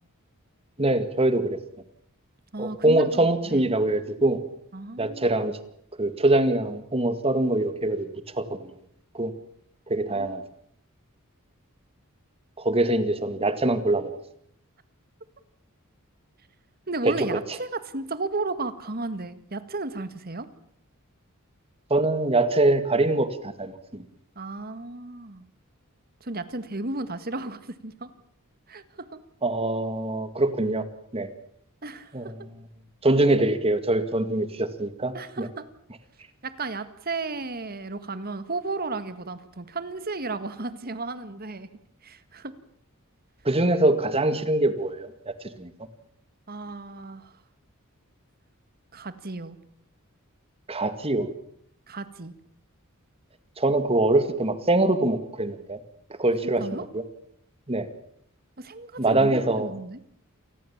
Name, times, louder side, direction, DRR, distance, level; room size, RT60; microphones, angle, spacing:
voice 1, 0.8-1.6 2.6-4.4 5.0-5.6 6.0-8.1 8.3-8.7 9.1-9.3 9.9-10.4 12.6-14.1 17.0-17.4 21.9-24.0 29.4-30.8 31.1-31.3 32.1-32.5 33.0-35.5 43.4-45.7 50.7-51.3 53.6-55.8 56.2-57.0 57.7-57.9 59.0-59.7, right 2 dB, 25° right, 11 dB, 2.1 m, -23 dB
voice 2, 2.5-3.6 4.7-5.3 10.1-10.4 16.9-20.5 24.4-25.4 26.2-28.1 28.7-29.2 31.8-32.3 35.1-35.7 36.4-41.7 42.0-42.5 46.5-47.3 48.9-49.6 51.9-52.3 56.4-56.9 58.6-60.0, right 3 dB, 45° right, 12 dB, 1.8 m, -34 dB
28.0 x 20.0 x 7.3 m, 0.69 s
head